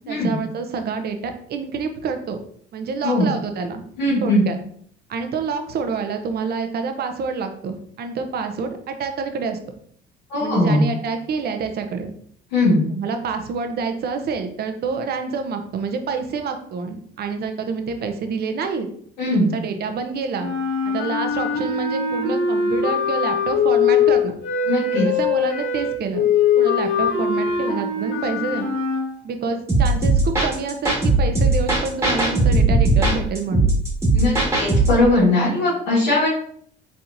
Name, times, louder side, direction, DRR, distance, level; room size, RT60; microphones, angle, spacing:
voice 1, 0.1-2.4 2.7-3.8 4.2-4.6 5.1-9.6 10.4-12.1 12.9-18.9 19.3-20.5 20.8-24.3 25.0-26.3 26.5-28.7 29.2-33.7, right 5 dB, 50° right, 6 dB, 0.8 m, -27 dB
voice 2, 4.0-4.4 10.3-10.8 12.5-12.8 19.2-19.5 24.7-25.1 34.1-36.3, left 2 dB, 85° left, -10 dB, 1.6 m, -19 dB
sound 1, 20.4-29.1, left 6 dB, 65° left, 1.5 m, -21 dB
sound 2, 29.7-35.0, right 2 dB, 15° right, 1.7 m, -18 dB
4.3 x 3.6 x 2.7 m, 0.63 s
hypercardioid pair, 70°, 21 cm